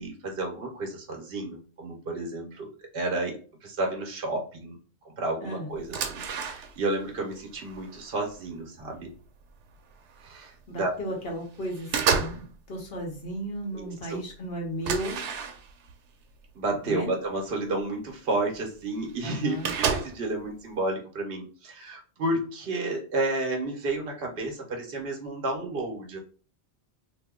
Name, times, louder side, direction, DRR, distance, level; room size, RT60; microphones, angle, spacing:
voice 1, 0.0-4.8 5.0-9.1 10.2-10.9 13.7-14.2 16.5-26.2, right 2 dB, 60° right, 1 dB, 1.0 m, -31 dB
voice 2, 5.4-5.7 10.7-15.2 16.9-17.1 19.2-19.7, equal, 60° left, 1 dB, 1.2 m, -34 dB
sound 1, 5.7-7.0 7.3-8.5 9.1-9.3 9.6-10.6 11.0-11.3 11.6-12.6 12.8-13.3 13.8-13.9 14.1-14.2 14.8-15.9 16.8-16.9 17.3-17.4 18.5-18.6 18.8-18.9 19.1-20.4, right 6 dB, 90° right, 0.9 m, -31 dB
2.8 x 2.3 x 3.6 m, 0.39 s
omnidirectional pair, 1.2 m